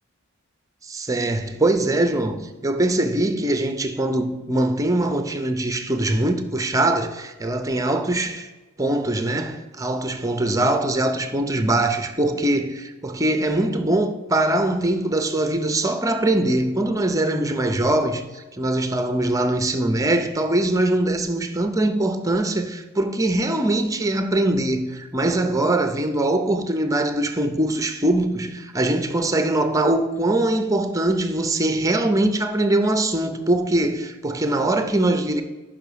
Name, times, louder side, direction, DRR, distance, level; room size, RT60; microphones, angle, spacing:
voice 1, 0.8-8.5 8.8-35.4, right 1 dB, 15° right, 0.6 m, -22 dB
5.9 x 5.5 x 6.7 m
head